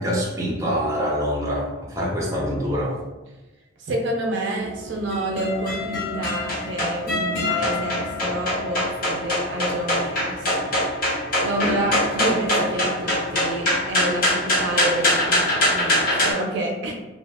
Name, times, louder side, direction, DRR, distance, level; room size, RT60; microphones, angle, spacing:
voice 1, 0.0-1.7 1.9-3.0, equal, 15° right, -4 dB, 0.6 m, -24 dB
voice 2, 3.8-10.7 11.4-16.9, right 1 dB, 60° right, 1 dB, 0.4 m, -28 dB
sound 1, 4.6-16.3, left 1 dB, 45° left, 0.9 m, -24 dB
2.7 x 2.1 x 3.4 m, 1.1 s
head